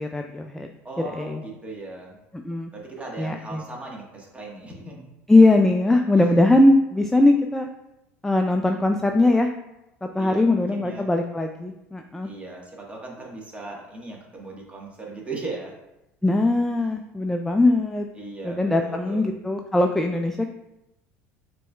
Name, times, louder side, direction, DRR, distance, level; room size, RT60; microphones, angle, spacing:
voice 1, 0.0-0.7 1.1-1.4 2.3-2.7 3.2-3.6 5.3-7.7 8.2-9.5 10.0-12.3 16.2-18.1 18.4-20.5, left 2 dB, 5° left, 4 dB, 0.3 m, -20 dB
voice 2, 0.8-2.2 2.7-5.1 6.2-6.5 10.2-11.1 12.2-15.7 16.8-16.9 18.1-19.2, right 2 dB, 15° right, -2 dB, 1.5 m, -38 dB
6.7 x 3.2 x 2.4 m, 0.91 s
hypercardioid pair, 75°, 7 cm